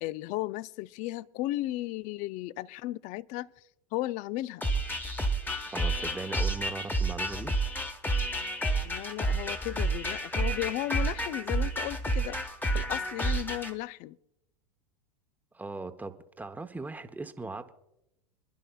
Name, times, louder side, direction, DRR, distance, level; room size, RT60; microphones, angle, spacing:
voice 1, 0.0-3.6 3.9-4.7 8.8-14.2, left 16 dB, 45° left, 0.4 m, -35 dB
sound 1, 4.6-13.7, right 1 dB, 10° left, 1.1 m, -30 dB
voice 2, 5.7-7.6 15.5-17.7, right 3 dB, 10° right, 0.9 m, -39 dB
28.0 x 11.0 x 2.3 m
hypercardioid pair, 100°, 18 cm